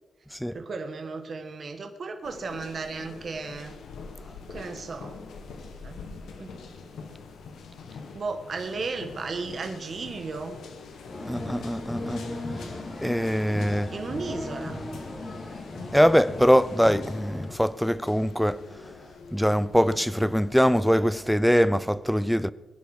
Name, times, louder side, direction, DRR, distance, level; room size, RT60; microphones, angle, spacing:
voice 1, 0.5-3.7 4.5-5.2 5.8-6.0 6.3-6.5 8.1-10.6 13.9-14.8, right 4 dB, 45° right, 1.5 m, -34 dB
sound 1, 2.2-21.4, left 4 dB, 85° left, 1.8 m, -44 dB
sound 2, 11.1-17.5, left 1 dB, 30° left, 2.6 m, -37 dB
voice 2, 11.3-12.3 13.0-13.9 15.9-18.6 19.3-22.5, equal, ahead, 0.5 m, -23 dB
22.0 x 10.5 x 5.0 m
cardioid pair, 110°, 0 cm